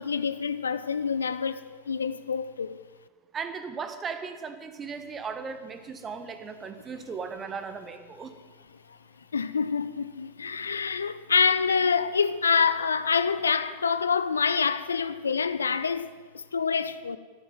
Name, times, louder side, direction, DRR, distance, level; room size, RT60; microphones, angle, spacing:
voice 1, 0.0-2.8 9.3-16.1 16.3-17.2, left 6 dB, 70° left, 0.6 m, -26 dB
voice 2, 3.3-8.4, right 5 dB, 20° right, 1.4 m, -37 dB
12.5 x 11.5 x 9.4 m
figure-of-eight pair, 90°, 0 cm